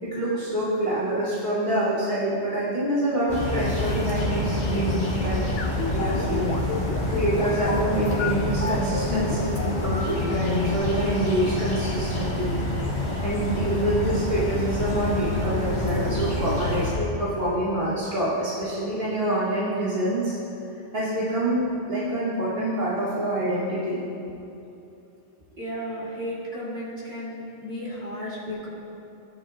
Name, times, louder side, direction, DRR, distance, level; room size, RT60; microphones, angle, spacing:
voice 1, 0.0-5.4 5.9-6.6 6.8-12.5 13.2-20.4 20.9-24.0, right 1 dB, 40° right, -10 dB, 2.8 m, -26 dB
sound 1, 3.3-16.9, left 1 dB, 40° left, 2.0 m, -27 dB
sound 2, 5.6-10.8, left 5 dB, 60° left, 1.0 m, -30 dB
voice 2, 25.6-28.7, equal, 60° right, -7 dB, 3.1 m, -34 dB
17.5 x 10.0 x 2.4 m, 2.8 s
omnidirectional pair, 1.2 m